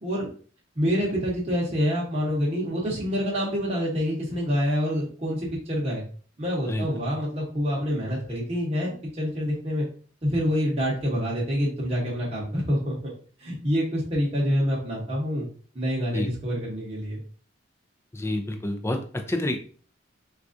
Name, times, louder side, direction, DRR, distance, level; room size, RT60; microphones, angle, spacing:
voice 1, 0.8-6.0 6.4-9.9 10.2-13.1 13.4-15.5 15.7-17.2, equal, 35° right, -5 dB, 0.9 m, -27 dB
voice 2, 18.1-19.6, left 1 dB, 15° left, 5 dB, 0.4 m, -28 dB
4.5 x 2.4 x 2.5 m, 0.42 s
head